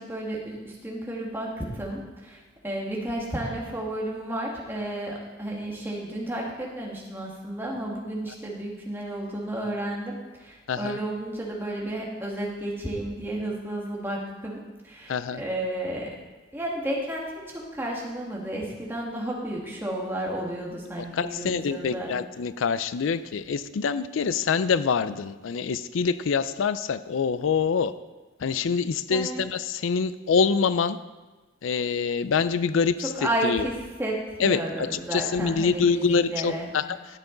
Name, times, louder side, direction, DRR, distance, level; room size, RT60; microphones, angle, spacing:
voice 1, 0.0-16.2 16.5-22.1 29.1-29.4 33.0-36.7, right 1 dB, 10° right, -3 dB, 1.9 m, -32 dB
voice 2, 15.1-15.4 21.1-27.9 28.4-31.0 31.6-33.1 33.4-33.7 34.4-36.8, left 5 dB, 80° left, 14 dB, 0.4 m, -25 dB
13.0 x 8.3 x 3.9 m, 1.2 s
head